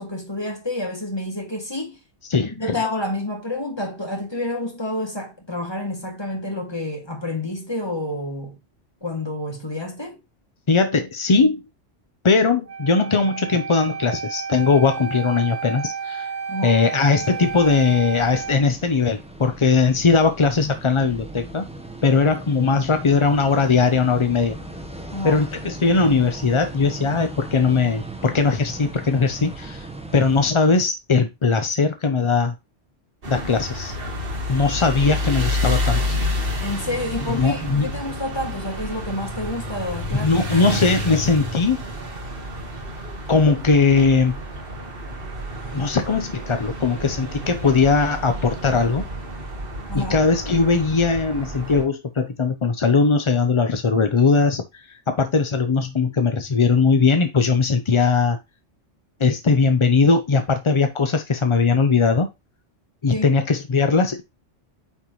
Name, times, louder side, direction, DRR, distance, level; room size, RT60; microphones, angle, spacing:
voice 1, 0.0-2.0 2.4-8.6 9.0-10.2 16.5-16.8 25.1-25.4 36.6-40.4 49.9-50.1 63.1-63.3, left 1 dB, 20° left, 2.1 m, -29 dB
voice 2, 2.3-2.8 10.7-11.6 12.2-16.3 16.6-21.7 22.0-24.6 25.2-29.9 30.1-32.5 33.3-33.9 34.5-36.2 37.3-37.9 40.1-41.8 43.3-44.4 45.7-49.1 49.9-58.4 59.2-62.3 63.0-64.2, left 4 dB, 40° left, 0.5 m, -19 dB
Wind instrument woodwind instrument, 12.6-18.6, right 6 dB, 35° right, 1.3 m, -31 dB
sound 1, 17.2-30.5, right 2 dB, 5° right, 0.9 m, -38 dB
sound 2, 33.2-51.8, left 1 dB, 50° right, 1.6 m, -29 dB
9.0 x 4.2 x 3.1 m
omnidirectional pair, 1.2 m